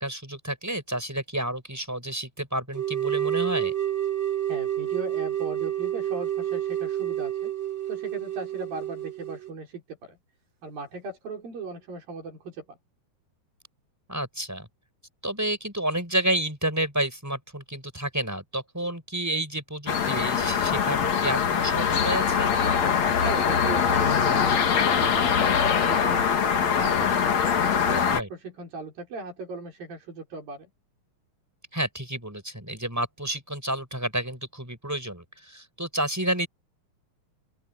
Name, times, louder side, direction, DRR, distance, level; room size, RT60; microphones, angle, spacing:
voice 1, 0.0-3.7 14.1-14.7 15.2-22.5 28.1-28.3 31.7-36.5, right 1 dB, 5° right, 6.2 m, -30 dB
sound 1, 2.7-9.5, right 11 dB, 55° right, 0.7 m, -29 dB
voice 2, 4.5-7.5 7.9-10.2 10.6-12.8 23.2-27.2 27.7-30.7, right 3 dB, 75° right, 7.3 m, -38 dB
sound 2, 19.9-28.2, left 7 dB, 55° left, 3.1 m, -23 dB
open air
omnidirectional pair, 4.1 m